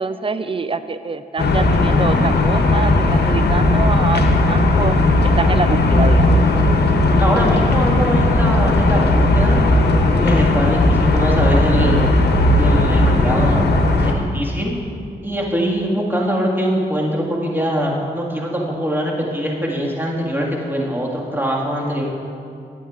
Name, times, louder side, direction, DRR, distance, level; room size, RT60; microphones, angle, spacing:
voice 1, 0.0-4.9 5.2-6.3, right 4 dB, 30° right, 12 dB, 0.3 m, -25 dB
sound 1, 1.4-14.1, left 2 dB, 70° left, 0.7 m, -16 dB
voice 2, 7.2-9.6 10.1-12.1 12.6-13.7 14.0-14.8 15.2-22.1, equal, 10° right, -3 dB, 1.8 m, -22 dB
11.0 x 8.8 x 2.5 m, 2.4 s
cardioid pair, 45°, 18 cm